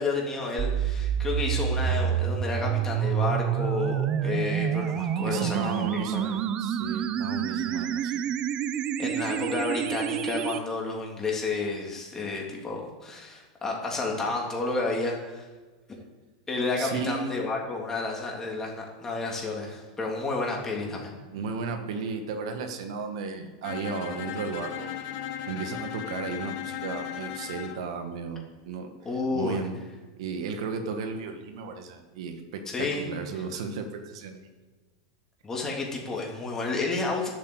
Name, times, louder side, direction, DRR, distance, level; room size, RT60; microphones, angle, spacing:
voice 1, 0.0-6.3 6.9-7.0 9.0-15.5 16.5-21.1 29.0-29.6 32.7-33.0 35.4-37.3, left 3 dB, 15° left, -1 dB, 3.2 m, -31 dB
sound 1, 0.6-10.6, right 9 dB, 35° right, 0.7 m, -28 dB
voice 2, 5.3-8.2 16.8-17.3 21.3-25.0 25.5-28.9 29.3-29.7 30.2-34.4, right 4 dB, 75° right, 6 dB, 1.8 m, -34 dB
Bowed string instrument, 23.6-27.8, left 11 dB, 55° left, 1.4 m, -36 dB
11.0 x 8.4 x 8.2 m, 1.3 s
supercardioid pair, 135°, 3 cm